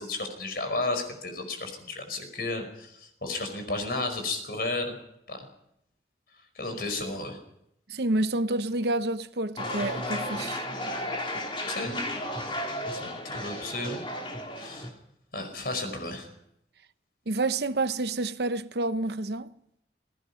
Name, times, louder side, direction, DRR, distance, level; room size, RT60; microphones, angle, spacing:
voice 1, 0.0-5.0 5.3-5.5 6.6-7.4 11.7-12.1 12.9-14.0 14.6-14.9 15.3-16.3, left 2 dB, 60° left, 5.3 m, -33 dB
voice 2, 7.9-10.7 17.3-19.5, right 2 dB, 70° right, 0.9 m, -29 dB
sound 1, 9.6-14.9, left 1 dB, 30° left, 3.4 m, -33 dB
28.0 x 19.0 x 5.8 m
head